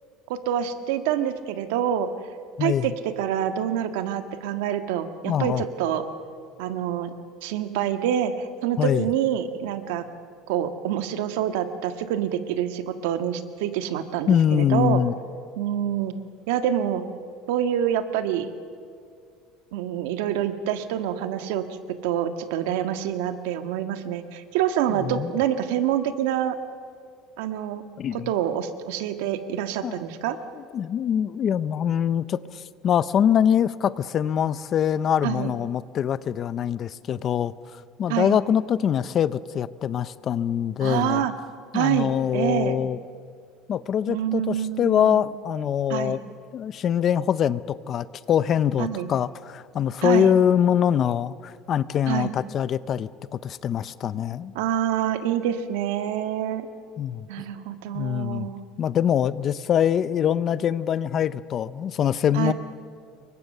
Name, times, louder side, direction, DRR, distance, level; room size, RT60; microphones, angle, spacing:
voice 1, 0.3-2.1 2.6-6.0 6.6-7.1 7.4-10.0 10.5-15.0 15.6-16.1 16.5-17.0 17.5-18.5 19.7-21.7 22.0-26.6 27.4-27.8 28.1-30.4 35.2-35.5 38.1-38.4 40.8-41.3 41.7-42.8 44.1-45.2 45.9-46.2 48.8-49.1 50.0-50.4 52.1-52.4 54.6-56.7 57.3-58.6 62.3-62.5, right 10 dB, 90° right, 9 dB, 1.6 m, -26 dB
voice 2, 2.6-2.9 5.2-5.6 8.8-9.0 14.3-15.1 25.0-25.3 28.0-28.3 29.8-30.0 30.5-41.2 41.7-43.0 43.7-46.2 46.5-53.1 53.4-54.5 57.0-57.3 57.9-58.5 58.8-62.5, left 9 dB, 30° left, 17 dB, 0.6 m, -24 dB
28.5 x 23.5 x 6.7 m, 2.2 s
cardioid pair, 170°, 0 cm